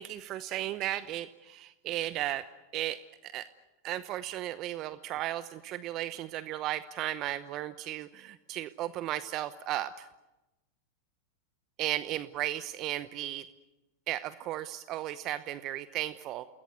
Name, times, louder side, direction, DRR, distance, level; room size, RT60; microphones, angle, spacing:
voice 1, 0.0-2.4 2.7-3.5 3.8-10.1 11.8-13.4 14.1-16.5, right 13 dB, 45° right, 14 dB, 0.9 m, -35 dB
28.5 x 20.5 x 8.2 m, 1.0 s
hypercardioid pair, 95°, 0 cm